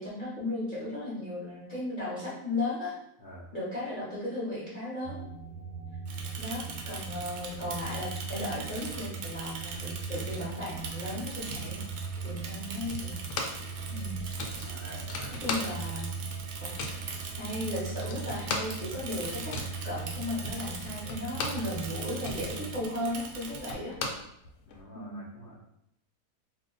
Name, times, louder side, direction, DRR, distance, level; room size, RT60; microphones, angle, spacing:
voice 1, 0.0-2.9 3.5-5.2 6.4-11.8 12.2-13.1 13.9-14.2 15.4-16.1 16.6-16.8 17.4-19.5 19.8-23.9 24.9-25.2, left 1 dB, 35° left, -9 dB, 0.9 m, -35 dB
sound 1, 5.0-22.8, right 5 dB, 20° right, 0.8 m, -40 dB
Bicycle / Mechanisms, 6.0-23.7, right 4 dB, 75° right, 0.7 m, -42 dB
sound 2, 12.9-13.7 14.0-14.1 14.4-16.1 16.3-17.1 17.6-17.7 17.9-21.7 22.0-24.8, left 3 dB, 80° left, 1.1 m, -37 dB
voice 2, 14.6-16.1 24.7-25.6, equal, 60° left, -7 dB, 0.5 m, -47 dB
2.7 x 2.2 x 3.9 m, 0.78 s
omnidirectional pair, 1.8 m